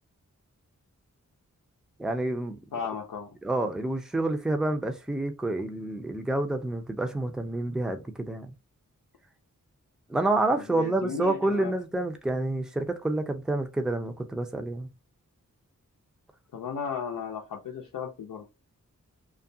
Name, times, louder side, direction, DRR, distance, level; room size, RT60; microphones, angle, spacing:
voice 1, 2.0-2.6 3.4-8.5 10.1-14.9, right 2 dB, ahead, 0.5 m, -28 dB
voice 2, 2.7-3.4 10.5-11.8 16.5-18.4, left 6 dB, 85° left, 0.6 m, -35 dB
2.4 x 2.2 x 2.6 m
wide cardioid pair, 65°, 32 cm